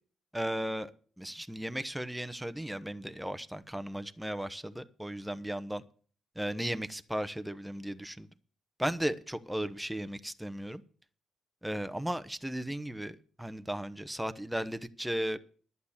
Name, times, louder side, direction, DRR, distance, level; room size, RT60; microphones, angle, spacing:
voice 1, 0.3-0.9 1.2-5.8 6.4-8.3 8.8-10.8 11.6-15.4, right 1 dB, 5° right, 0.9 m, -35 dB
11.5 x 8.2 x 7.2 m
cardioid pair, 90°, 0 cm